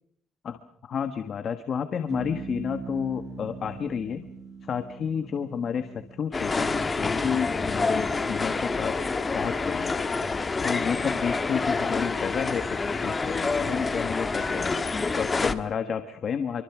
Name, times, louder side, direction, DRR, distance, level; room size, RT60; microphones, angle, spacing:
voice 1, 0.4-4.3 4.6-10.0 10.6-14.8 15.2-16.6, left 7 dB, 40° left, 9 dB, 1.4 m, -31 dB
sound 1, 2.1-12.6, right 4 dB, 45° right, 7.9 m, -44 dB
sound 2, 6.3-15.6, left 4 dB, 20° left, 1.4 m, -27 dB
27.0 x 24.0 x 6.2 m, 0.67 s
cardioid pair, 140°, 0 cm